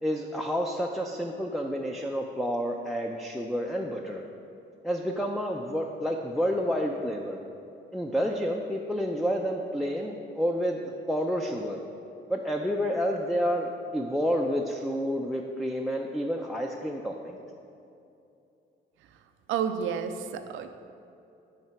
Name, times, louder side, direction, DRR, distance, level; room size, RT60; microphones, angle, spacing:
voice 1, 0.0-4.2 4.8-7.4 7.9-11.8 12.3-17.4, equal, ahead, 1 dB, 0.4 m, -29 dB
voice 2, 19.5-20.7, right 7 dB, 85° right, 8 dB, 0.5 m, -30 dB
8.9 x 3.3 x 5.8 m, 2.7 s
cardioid pair, 90°, 20 cm